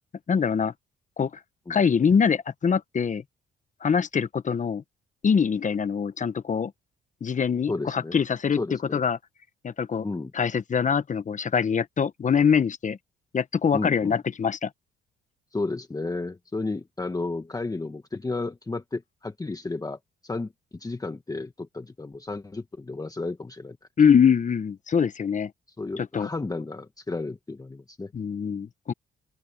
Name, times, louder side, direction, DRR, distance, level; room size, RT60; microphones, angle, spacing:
voice 1, 0.3-0.7 1.2-1.3 1.7-3.2 3.8-4.8 5.2-6.7 7.2-8.6 8.9-9.2 9.6-10.1 10.3-13.0 13.3-14.7 24.0-25.5 26.0-26.3 28.1-28.9, left 6 dB, 40° left, 1.2 m, -23 dB
voice 2, 7.7-8.1 8.6-9.0 10.0-10.3 13.7-14.2 15.5-23.8 25.8-28.1, left 3 dB, 20° left, 1.4 m, -33 dB
open air
cardioid pair, 90°, 20 cm